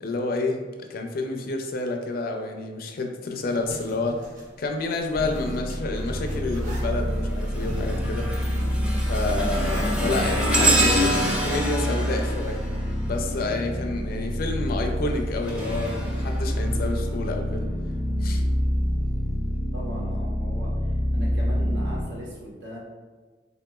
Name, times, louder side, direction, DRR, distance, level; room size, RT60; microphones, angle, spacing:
voice 1, 0.0-4.3 4.6-8.3 9.1-12.6 13.0-17.7 18.2-18.4, left 2 dB, 55° left, 3 dB, 0.4 m, -29 dB
Zipper (clothing), 3.4-10.6, equal, 45° right, 0.8 m, -42 dB
sound 1, 5.1-22.0, equal, 65° right, 1.4 m, -27 dB
sound 2, 6.0-6.3 6.8-13.6 14.9-17.1 17.7-17.9 18.8-18.9, right 1 dB, 5° right, 0.5 m, -28 dB
voice 2, 19.7-22.8, equal, 85° right, -4 dB, 1.0 m, -39 dB
4.0 x 2.9 x 2.3 m, 1.3 s
head